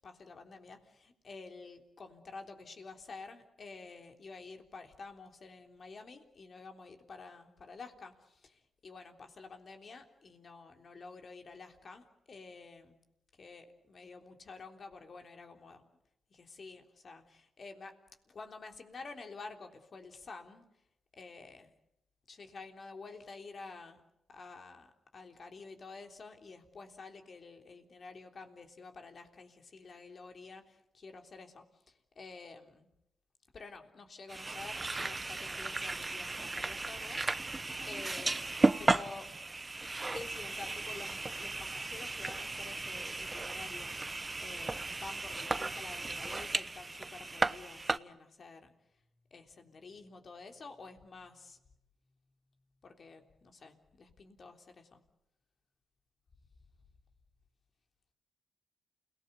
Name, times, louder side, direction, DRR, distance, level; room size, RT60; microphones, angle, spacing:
voice 1, 0.0-13.0 13.3-15.8 16.3-18.0 18.3-20.7 21.1-21.7 22.3-24.0 24.3-32.9 33.5-37.5 37.8-39.3 40.1-48.7 49.3-51.6 52.8-55.0, left 4 dB, 55° left, 5 dB, 3.5 m, -50 dB
sound 1, 34.3-48.0, right 3 dB, 30° right, 0.9 m, -35 dB
29.0 x 19.0 x 8.1 m, 0.83 s
supercardioid pair, 45°, 0 cm